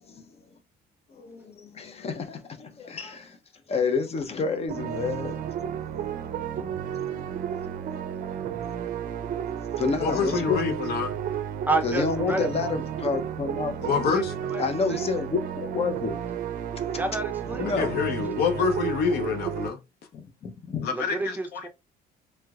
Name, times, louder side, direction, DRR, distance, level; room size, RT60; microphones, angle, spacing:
voice 1, 1.1-3.4 3.7-5.5 7.6-8.0 9.8-10.6 11.8-13.9 14.6-16.2 17.4-17.9 20.1-20.9, left 5 dB, 35° left, 0.7 m, -29 dB
sound 1, 4.7-19.7, right 9 dB, 55° right, 0.5 m, -32 dB
voice 2, 10.0-11.1 13.8-14.3 17.8-19.8 20.8-21.7, left 5 dB, 70° left, 0.7 m, -26 dB
voice 3, 11.7-12.7 14.4-14.6 14.9-15.0 17.0-17.9 20.9-21.7, right 2 dB, 10° right, 0.6 m, -30 dB
3.1 x 2.9 x 2.4 m
cardioid pair, 110°, 17 cm